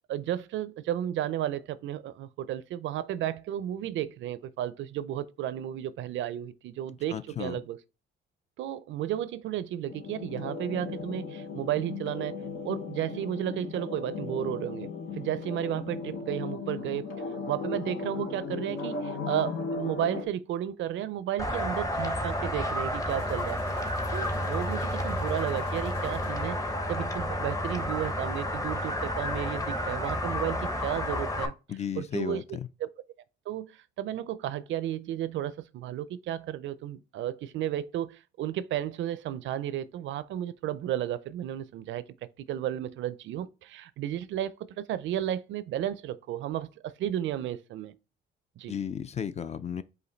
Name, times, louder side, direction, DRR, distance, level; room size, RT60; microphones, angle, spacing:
voice 1, 0.1-7.8 8.6-12.4 12.6-17.1 17.5-26.6 26.9-31.5 32.0-32.9 33.5-42.0 42.5-47.9 48.6-48.7, right 11 dB, 70° right, 0.4 m, -33 dB
voice 2, 7.1-7.6 31.7-32.7 48.7-49.8, left 8 dB, 35° left, 0.4 m, -34 dB
sound 1, 9.9-20.3, left 4 dB, 85° left, 1.0 m, -36 dB
sound 2, 21.4-31.5, left 1 dB, 15° left, 0.8 m, -31 dB
sound 3, 23.1-27.0, left 3 dB, 55° left, 1.6 m, -51 dB
5.0 x 2.6 x 3.9 m
cardioid pair, 90°, 20 cm